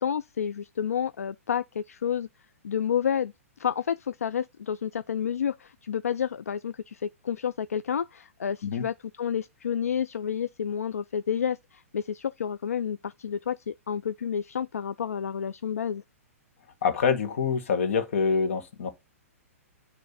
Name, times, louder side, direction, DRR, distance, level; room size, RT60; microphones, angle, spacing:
voice 1, 0.0-2.3 2.6-3.3 3.6-16.0, left 8 dB, 75° left, 0.4 m, -30 dB
voice 2, 16.8-18.9, left 5 dB, 60° left, 1.7 m, -25 dB
9.3 x 3.2 x 4.1 m
figure-of-eight pair, 115°, 8 cm